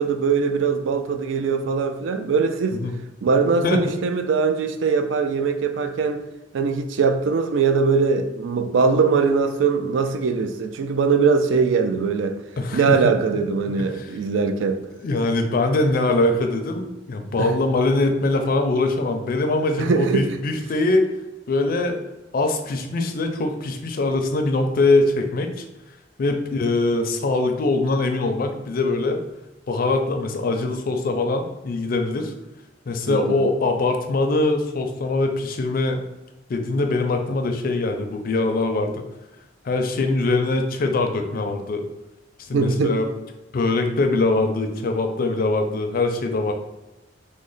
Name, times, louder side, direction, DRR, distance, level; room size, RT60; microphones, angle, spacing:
voice 1, 0.0-2.8 3.2-6.2 6.5-12.4 12.7-14.8 17.4-17.6 19.8-20.4 33.1-33.4 42.5-43.0, right 5 dB, 80° right, 8 dB, 0.4 m, -21 dB
voice 2, 12.6-13.1 13.9-14.1 15.0-21.0 21.5-22.0 22.3-25.6 26.2-29.2 29.7-32.3 32.9-36.0 36.5-39.0 39.6-41.8 42.5-43.1 43.5-46.5, left 2 dB, 50° left, 5 dB, 0.4 m, -22 dB
3.0 x 2.1 x 3.8 m, 1.0 s
head